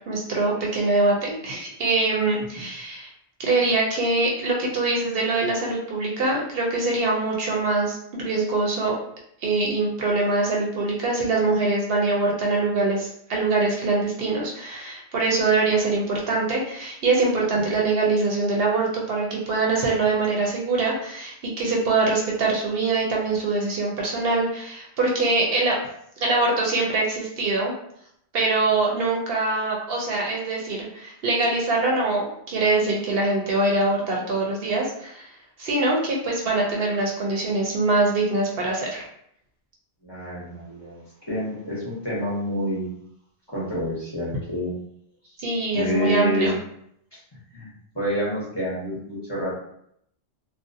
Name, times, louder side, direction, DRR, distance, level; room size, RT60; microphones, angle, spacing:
voice 1, 0.1-3.1 3.4-8.9 9.4-25.8 26.2-27.7 28.3-35.3 35.6-39.0 45.4-46.5, right 3 dB, 65° right, -2 dB, 0.7 m, -23 dB
voice 2, 40.0-42.9 43.5-44.7 45.7-46.6 47.5-47.7 47.9-49.5, left 1 dB, 25° left, -8 dB, 0.7 m, -28 dB
2.4 x 2.1 x 2.5 m, 0.73 s
omnidirectional pair, 1.1 m